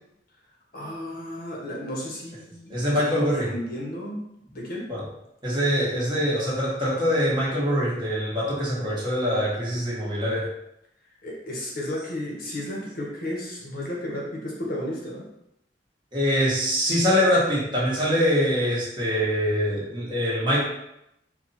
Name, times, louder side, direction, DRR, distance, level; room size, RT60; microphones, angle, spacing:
voice 1, 0.7-4.2 4.5-4.9 11.2-15.2, left 1 dB, 55° left, -3 dB, 1.2 m, -33 dB
voice 2, 2.7-3.5 4.9-5.0 5.4-10.5 16.1-20.6, equal, 25° right, -6 dB, 1.4 m, -24 dB
4.7 x 2.7 x 4.2 m, 0.81 s
head